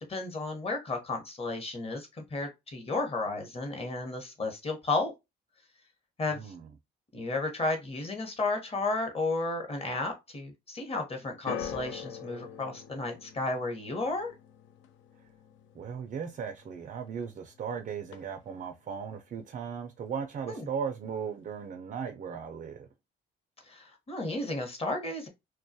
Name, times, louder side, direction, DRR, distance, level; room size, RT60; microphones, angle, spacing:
voice 1, 0.1-5.1 6.2-6.5 7.1-14.3 20.5-20.7 23.7-25.3, left 2 dB, 30° left, 0.8 m, -33 dB
voice 2, 6.3-6.7 15.7-22.9, right 7 dB, 45° right, 0.4 m, -37 dB
sound 1, 11.5-17.7 18.0-18.7 19.4-19.5, left 8 dB, 75° left, 0.4 m, -44 dB
2.2 x 2.1 x 2.6 m
cardioid pair, 90°, 20 cm